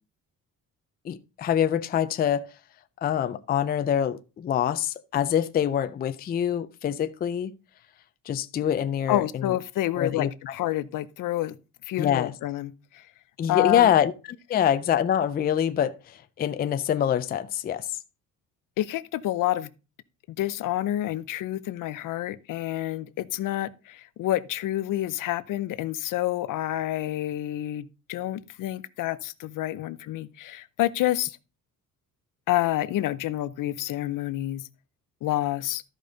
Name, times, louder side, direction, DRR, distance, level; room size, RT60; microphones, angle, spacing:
voice 1, 1.0-2.5 3.0-7.5 8.3-9.5 10.0-10.3 12.0-12.3 13.4-18.0, left 9 dB, 30° left, 0.4 m, -25 dB
voice 2, 9.1-11.6 11.9-13.0 13.5-13.9 18.8-19.7 20.4-31.4 32.5-34.6 35.2-35.8, left 14 dB, 70° left, 0.6 m, -28 dB
13.5 x 5.1 x 3.9 m
cardioid pair, 175°, 33 cm